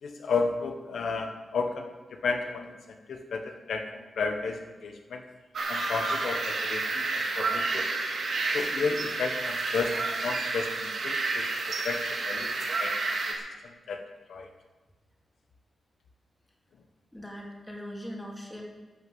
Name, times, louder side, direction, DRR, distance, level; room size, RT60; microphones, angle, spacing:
voice 1, 0.0-5.2 5.7-7.9 8.5-11.5 11.8-12.5 12.8-13.0 13.6-14.0 14.3-14.5, left 4 dB, 70° left, 4 dB, 1.2 m, -33 dB
sound 1, 5.5-13.3, right 3 dB, 65° right, 3.1 m, -30 dB
voice 2, 17.1-18.6, equal, 10° left, -1 dB, 2.5 m, -40 dB
12.0 x 9.4 x 7.7 m, 1.2 s
wide cardioid pair, 175°, 0 cm